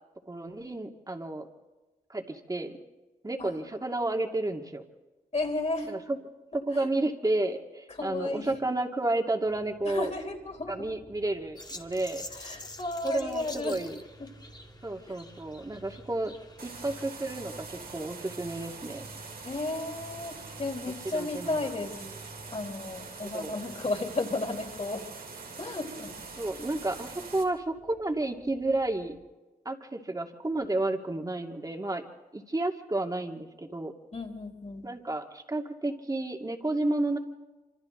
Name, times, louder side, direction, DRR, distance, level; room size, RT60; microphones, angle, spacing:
voice 1, 0.3-1.5 2.1-2.7 3.2-4.8 5.8-6.2 6.7-10.1 10.7-12.2 13.0-13.9 14.8-16.3 16.6-19.0 21.1-21.7 22.0-22.2 23.3-23.5 26.4-29.2 29.6-32.0 32.3-33.9 34.8-37.2, right 2 dB, 25° right, 3 dB, 2.4 m, -31 dB
voice 2, 5.3-5.9 6.7-6.9 8.0-8.5 9.8-10.9 12.3-13.8 15.0-15.2 19.4-22.0 22.5-25.0 25.6-26.1 34.1-34.9, left 2 dB, 45° left, 1 dB, 4.3 m, -33 dB
sound 1, 9.4-29.2, right 2 dB, 65° right, 4.5 m, -54 dB
sound 2, 11.6-17.1, left 2 dB, 25° left, 1.9 m, -47 dB
sound 3, 16.6-27.4, right 4 dB, 80° right, 3.1 m, -44 dB
26.5 x 26.0 x 4.0 m, 1.2 s
wide cardioid pair, 80°, 15 cm